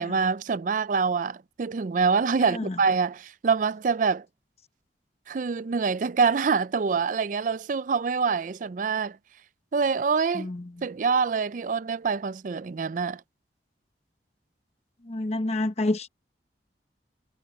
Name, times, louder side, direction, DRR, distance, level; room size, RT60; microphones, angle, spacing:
voice 1, 0.0-4.2 5.3-9.2 9.7-10.5 10.8-13.2, right 5 dB, 45° right, 0.4 m, -25 dB
voice 2, 2.4-2.8 10.3-10.7 15.0-16.1, left 2 dB, 35° left, 0.9 m, -28 dB
head